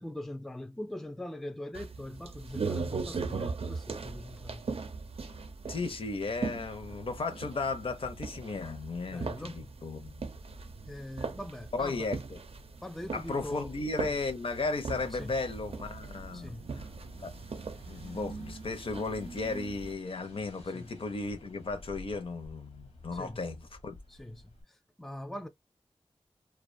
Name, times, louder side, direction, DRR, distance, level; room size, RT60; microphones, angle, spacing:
voice 1, 0.0-4.7 9.1-9.8 10.9-12.1 12.8-13.7 15.1-15.4 16.3-16.7 20.7-21.0 23.1-23.5 24.1-25.5, left 1 dB, 5° left, 0.4 m, -42 dB
sound 1, 1.7-19.9, right 4 dB, 65° right, 0.5 m, -40 dB
voice 2, 5.7-10.2 11.7-12.4 13.1-16.8 17.2-17.3 17.9-23.9, left 3 dB, 60° left, 0.5 m, -35 dB
sound 2, 15.7-24.6, left 1 dB, 85° left, 0.9 m, -54 dB
2.3 x 2.2 x 2.5 m
wide cardioid pair, 55°, 11 cm